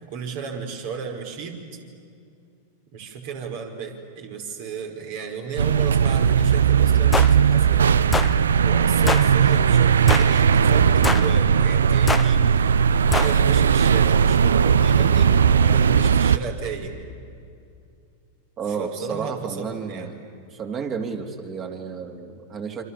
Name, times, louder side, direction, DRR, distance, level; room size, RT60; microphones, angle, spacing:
voice 1, 0.0-1.8 2.9-7.9 8.6-12.7 13.1-16.9 18.7-20.1, right 6 dB, 60° right, 3 dB, 4.8 m, -33 dB
sound 1, 5.6-16.4, right 7 dB, 80° right, 0.6 m, -18 dB
sound 2, 7.1-7.3 8.1-8.3 9.1-9.3 10.1-10.4 11.0-11.3 12.1-12.3 13.1-13.3, left 4 dB, 15° left, 0.8 m, -24 dB
voice 2, 18.6-20.3 20.5-22.8, right 5 dB, 35° right, 3 dB, 3.5 m, -31 dB
28.5 x 26.0 x 7.1 m, 2.4 s
hypercardioid pair, 95°, 0 cm